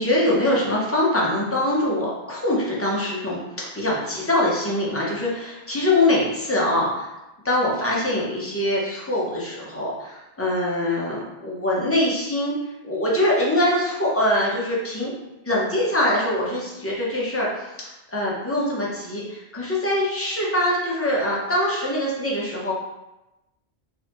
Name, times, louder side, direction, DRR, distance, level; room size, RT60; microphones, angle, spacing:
voice 1, 0.0-7.1 7.4-12.5 12.8-15.1 15.4-17.7 18.1-22.7, left 1 dB, 15° left, -5 dB, 0.7 m, -23 dB
4.0 x 2.7 x 2.9 m, 0.97 s
omnidirectional pair, 1.1 m